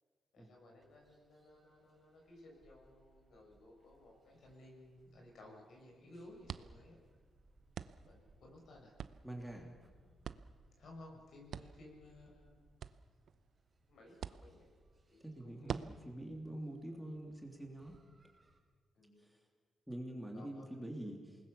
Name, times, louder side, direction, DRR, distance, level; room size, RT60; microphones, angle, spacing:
voice 1, 0.3-7.0 8.0-8.9 10.1-10.3 10.8-12.8 13.9-14.7 15.1-15.9 16.3-16.6 18.9-19.3 20.3-21.2, left 1 dB, 70° left, 1 dB, 6.9 m, -58 dB
sound 1, 0.8-18.6, right 2 dB, 30° right, 5.2 m, -70 dB
sound 2, 3.8-18.0, right 8 dB, 70° right, 0.7 m, -51 dB
voice 2, 9.2-9.7 15.2-18.0 19.2-19.4 19.9-21.2, right 1 dB, 5° right, 1 dB, 3.0 m, -45 dB
28.0 x 20.0 x 7.1 m, 1.5 s
cardioid pair, 120°, 0 cm